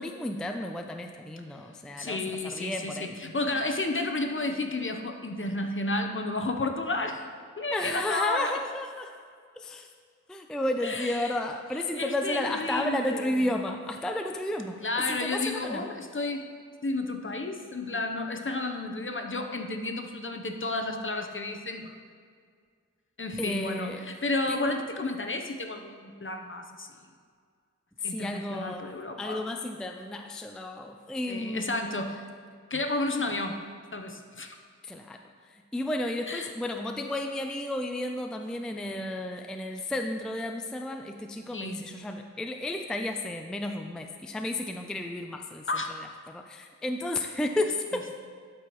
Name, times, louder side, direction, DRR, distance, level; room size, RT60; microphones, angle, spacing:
voice 1, 0.0-2.2 2.4-3.1 7.7-9.2 9.6-9.9 10.3-15.8 23.4-24.1 24.5-24.8 28.0-28.9 29.2-32.0 33.2-33.3 34.8-46.0 46.3-48.0, left 1 dB, ahead, 5 dB, 0.4 m, -32 dB
voice 2, 2.0-7.3 7.6-8.6 10.8-11.4 12.0-13.5 14.8-16.5 16.8-22.0 23.2-26.9 28.0-29.4 31.3-32.2 32.7-33.6 33.9-34.6 36.3-36.5 41.5-41.9 45.7-45.9, left 2 dB, 40° left, 4 dB, 0.7 m, -32 dB
12.0 x 4.7 x 3.0 m, 2.1 s
wide cardioid pair, 50°, 31 cm